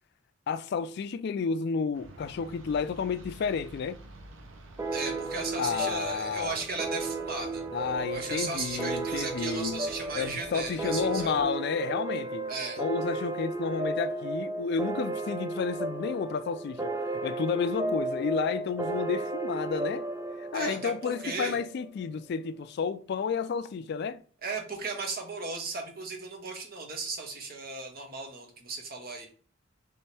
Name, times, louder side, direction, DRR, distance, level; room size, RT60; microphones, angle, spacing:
voice 1, 0.5-4.0 5.6-6.6 7.7-9.9 10.2-12.5 12.8-16.9 17.2-20.1 20.4-24.2, left 5 dB, 55° left, 0.3 m, -31 dB
sound 1, 1.9-11.4, right 1 dB, 80° right, 0.9 m, -50 dB
sound 2, 4.8-21.9, right 2 dB, 15° right, 0.4 m, -34 dB
voice 2, 4.9-7.6 8.1-11.4 12.5-12.8 20.5-21.6 24.4-29.3, right 3 dB, 50° right, 1.4 m, -36 dB
3.6 x 3.4 x 4.2 m
head